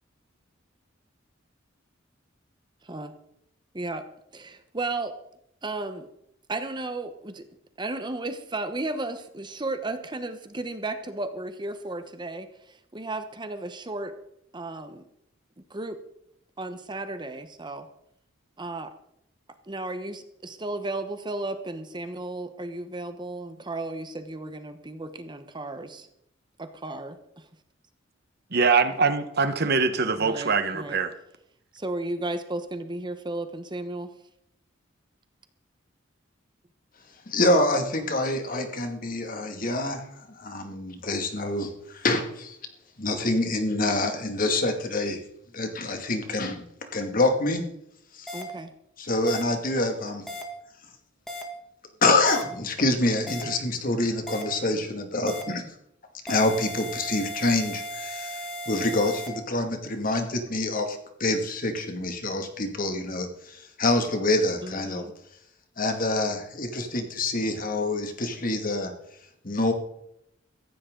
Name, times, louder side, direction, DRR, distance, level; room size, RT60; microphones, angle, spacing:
voice 1, 2.8-3.1 3.7-4.0 4.3-5.1 5.6-6.1 6.5-7.4 7.8-14.1 14.5-15.0 15.7-16.0 16.6-17.9 18.6-18.9 19.7-26.1 26.6-27.5 30.2-31.0 31.7-34.1 48.3-48.7 64.6-65.1, right 2 dB, 25° right, 9 dB, 1.0 m, -34 dB
voice 2, 28.5-31.1, right 4 dB, 55° right, 10 dB, 1.4 m, -23 dB
voice 3, 37.3-40.0 40.4-42.6 43.0-45.2 45.5-46.6 46.9-47.6 48.1-48.3 49.0-50.3 52.0-55.7 56.3-65.1 65.8-68.9 69.4-69.7, left 2 dB, 45° left, 5 dB, 2.3 m, -26 dB
sound 1, 48.3-48.4 49.3-49.4 50.3-50.4 51.3-51.4 52.3-52.4 53.3-53.4 54.3-54.4 55.3-55.4 56.3-59.3, left 1 dB, ahead, 2.4 m, -36 dB
16.0 x 15.0 x 3.9 m, 0.76 s
head